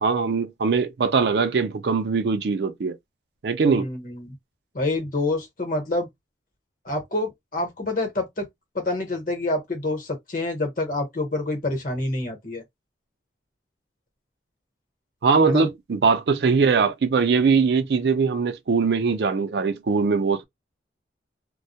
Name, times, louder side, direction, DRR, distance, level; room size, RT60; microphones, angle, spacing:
voice 1, 0.0-3.0 3.4-3.9 15.2-20.4, right 5 dB, 65° right, 0.4 m, -21 dB
voice 2, 3.7-4.3 4.7-6.1 6.8-8.5 8.7-12.6 15.5-15.7, left 2 dB, 50° left, 1.0 m, -27 dB
2.2 x 2.0 x 2.7 m
head